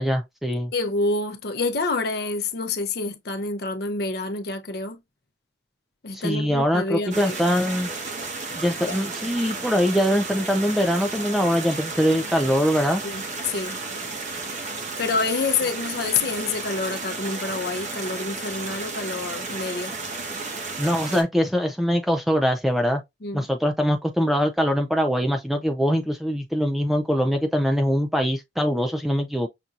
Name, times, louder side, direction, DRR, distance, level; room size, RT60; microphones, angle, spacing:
voice 1, 0.0-0.7 6.1-7.9 8.6-13.0 20.8-23.0 23.3-29.5, equal, ahead, 0.3 m, -23 dB
voice 2, 0.7-5.0 6.0-7.4 8.9-9.0 13.0-13.8 15.0-19.9 23.2-23.5, left 3 dB, 55° left, 0.7 m, -27 dB
sound 1, 7.1-21.2, right 3 dB, 40° right, 0.9 m, -33 dB
5.9 x 2.6 x 2.4 m
head